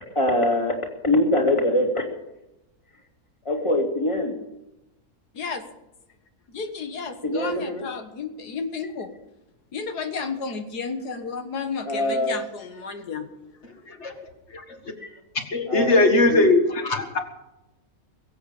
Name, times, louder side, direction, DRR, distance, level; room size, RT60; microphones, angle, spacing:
voice 1, 0.1-0.8 1.0-2.0 3.4-4.4 7.2-7.9 11.8-12.3 15.0-15.1 15.7-16.4, left 1 dB, 20° left, 2 dB, 2.5 m, -23 dB
voice 2, 6.5-9.1 9.7-13.3, left 5 dB, 90° left, 6 dB, 2.0 m, -32 dB
voice 3, 15.4-17.2, left 2 dB, 45° left, 5 dB, 2.2 m, -20 dB
22.5 x 8.2 x 7.0 m, 0.93 s
omnidirectional pair, 1.6 m